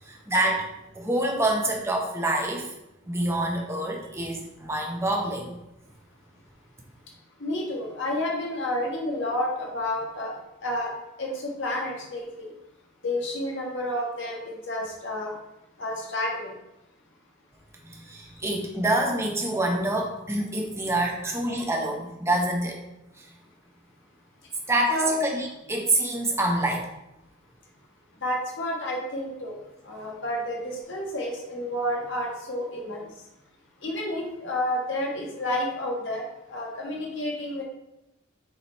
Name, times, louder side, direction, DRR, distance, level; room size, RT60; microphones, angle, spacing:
voice 1, 0.0-0.7 0.9-2.7 3.1-5.6 17.8-22.8 23.2-23.3 24.7-26.9, right 1 dB, 15° right, 0 dB, 1.0 m, -26 dB
voice 2, 7.1-12.5 13.0-15.4 15.8-16.5 18.2-18.4 21.2-21.3 24.9-25.2 28.2-33.3 33.8-37.6, left 1 dB, 60° left, -1 dB, 1.7 m, -30 dB
6.9 x 3.9 x 4.4 m, 0.90 s
head